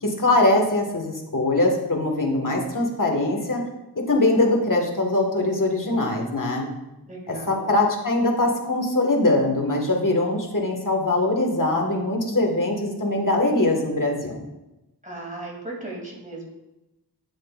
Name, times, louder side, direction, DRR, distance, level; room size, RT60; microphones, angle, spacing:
voice 1, 0.0-3.6 4.1-6.7 7.3-14.4, left 2 dB, 50° left, 1 dB, 1.7 m, -22 dB
voice 2, 7.1-7.7 15.0-16.5, right 2 dB, 20° right, -3 dB, 2.6 m, -36 dB
10.0 x 7.3 x 2.5 m, 0.98 s
wide cardioid pair, 65°, 42 cm